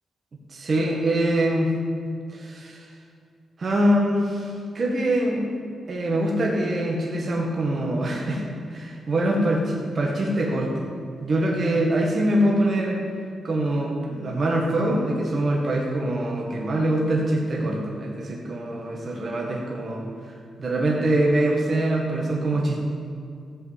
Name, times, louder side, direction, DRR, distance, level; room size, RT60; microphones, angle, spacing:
voice 1, 0.5-1.7 2.3-2.9 3.6-5.4 5.9-8.4 8.7-10.8 11.2-13.0 13.4-20.3 20.6-22.8, right 1 dB, 35° right, -1 dB, 1.7 m, -24 dB
15.5 x 5.6 x 8.3 m, 2.3 s
wide cardioid pair, 170°, 0 cm